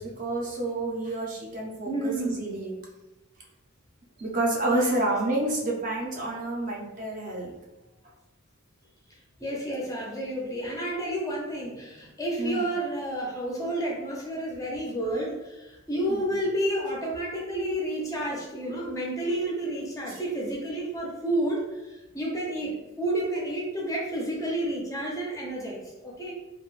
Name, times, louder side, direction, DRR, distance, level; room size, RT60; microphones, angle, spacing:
voice 1, 0.0-2.8 4.2-7.5 12.4-12.7 16.1-16.4 18.7-18.8 20.1-20.2, right 2 dB, 40° right, -3 dB, 0.5 m, -29 dB
voice 2, 1.9-2.5 4.6-4.9 9.4-26.3, right 1 dB, 15° left, -3 dB, 0.4 m, -30 dB
2.4 x 2.1 x 3.0 m, 1.0 s
head